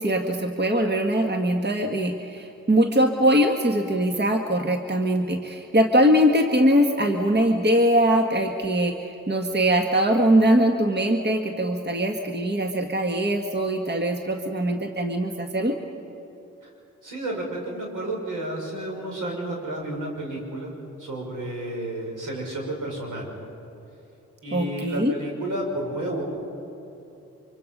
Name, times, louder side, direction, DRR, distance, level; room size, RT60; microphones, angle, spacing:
voice 1, 0.0-15.7 24.5-25.1, equal, 35° right, 3 dB, 1.8 m, -22 dB
voice 2, 17.0-20.7 21.0-23.3 24.4-26.2, right 1 dB, 80° right, -1 dB, 6.1 m, -31 dB
25.0 x 24.5 x 5.5 m, 3.0 s
cardioid pair, 60°, 31 cm